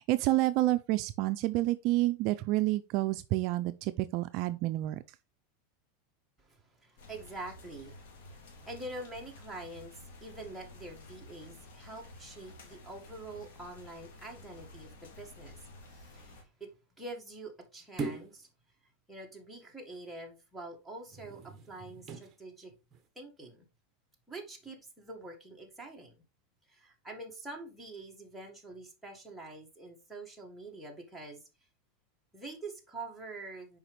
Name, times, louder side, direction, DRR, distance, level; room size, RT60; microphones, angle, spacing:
voice 1, 0.0-5.0, right 17 dB, 50° right, 0.4 m, -29 dB
voice 2, 6.4-16.7 17.0-18.5 19.1-22.7 23.2-23.7 24.3-26.2 26.7-31.4 32.3-33.8, right 2 dB, ahead, 1.8 m, -46 dB
sound 1, 7.0-16.4, left 2 dB, 80° left, 2.8 m, -52 dB
sound 2, 18.0-18.4 21.1-22.4 22.9-23.1, right 4 dB, 25° right, 1.2 m, -40 dB
7.0 x 5.0 x 3.3 m
supercardioid pair, 145°, 0 cm